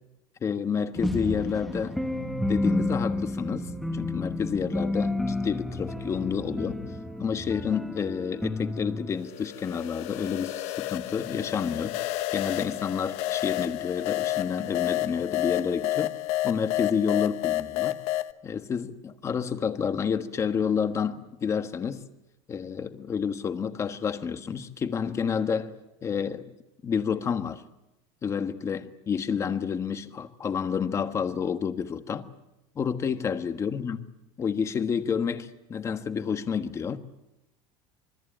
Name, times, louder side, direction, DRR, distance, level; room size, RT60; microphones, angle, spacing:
voice 1, 0.4-2.1 2.5-6.8 7.2-16.1 16.4-18.0 18.4-22.0 22.5-25.7 26.0-26.5 26.8-27.6 28.2-32.3 32.7-34.0 34.4-37.0, left 6 dB, 20° left, 1.4 m, -29 dB
sound 1, 1.0-9.2, left 1 dB, ahead, 1.6 m, -31 dB
sound 2, 9.2-18.3, left 15 dB, 55° left, 1.0 m, -30 dB
26.5 x 23.5 x 8.9 m
cardioid pair, 160°, 13 cm